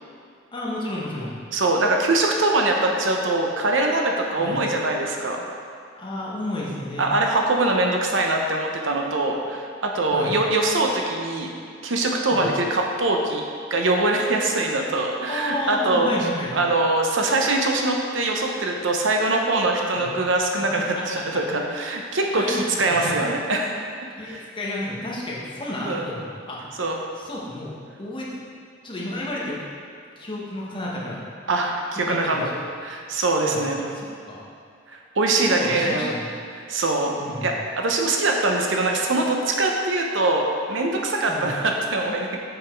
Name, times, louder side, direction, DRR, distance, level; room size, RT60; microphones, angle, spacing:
voice 1, 0.5-1.4 4.4-4.6 6.0-7.1 10.1-10.4 12.3-12.5 15.3-16.5 19.9-20.1 20.5-21.0 22.3-23.2 24.2-26.7 27.2-28.4 28.8-29.6 30.2-31.2 32.1-32.5 33.4-34.4 35.4-36.3 37.2-37.5 41.3-41.6, left 1 dB, 25° left, -5 dB, 1.3 m, -31 dB
voice 2, 1.5-5.4 7.0-11.5 11.8-13.4 13.7-16.1 16.5-23.7 24.2-24.5 25.8-26.0 26.8-27.0 31.5-32.5 32.8-33.8 34.9-36.2 36.7-37.2 37.4-42.4, right 2 dB, 70° right, 1 dB, 0.8 m, -23 dB
7.1 x 5.8 x 4.6 m, 2.3 s
head